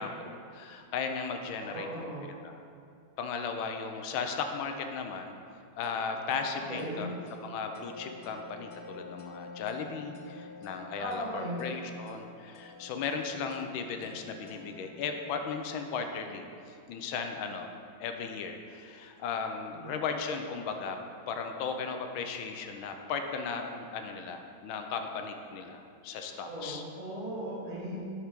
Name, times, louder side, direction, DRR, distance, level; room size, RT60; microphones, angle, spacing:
voice 1, 0.0-2.1 2.4-2.6 3.2-5.4 5.8-7.1 7.4-16.5 16.9-17.7 18.0-21.0 21.3-26.8, left 5 dB, 80° left, 5 dB, 1.4 m, -36 dB
voice 2, 1.6-2.3 6.7-7.0 11.0-11.6 19.7-19.9 26.4-28.0, right 1 dB, 40° right, -8 dB, 2.3 m, -38 dB
sound 1, 5.8-15.4, left 3 dB, 60° left, 1.1 m, -50 dB
7.2 x 4.7 x 5.1 m, 2.3 s
omnidirectional pair, 2.2 m